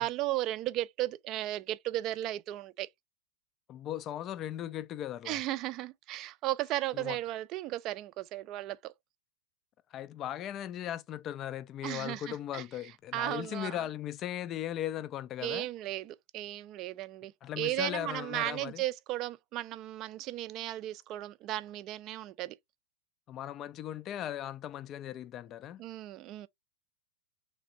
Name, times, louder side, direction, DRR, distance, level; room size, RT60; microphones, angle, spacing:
voice 1, 0.0-2.9 5.3-8.9 11.8-12.6 13.1-13.8 15.4-22.6 25.8-26.5, right 15 dB, 40° right, 0.4 m, -35 dB
voice 2, 3.7-5.4 6.9-7.2 9.9-15.7 17.4-18.8 23.3-25.8, left 11 dB, 35° left, 0.3 m, -38 dB
3.2 x 2.5 x 3.7 m
hypercardioid pair, 100°, 0 cm